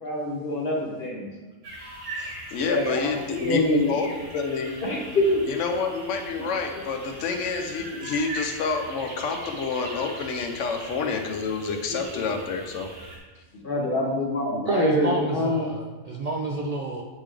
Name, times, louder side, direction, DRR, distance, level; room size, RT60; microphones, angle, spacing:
voice 1, 0.0-1.3 2.6-3.1 3.4-4.0 4.8-5.4 11.9-12.2 13.6-15.7, left 1 dB, 50° left, -1 dB, 1.3 m, -25 dB
sound 1, 1.6-13.2, right 2 dB, 55° right, 1.4 m, -40 dB
voice 2, 2.2-4.7 5.5-12.9, left 4 dB, 85° left, 4 dB, 1.0 m, -28 dB
voice 3, 14.6-17.0, right 2 dB, 75° right, 0 dB, 0.3 m, -28 dB
8.2 x 3.6 x 3.3 m, 1.3 s
omnidirectional pair, 1.2 m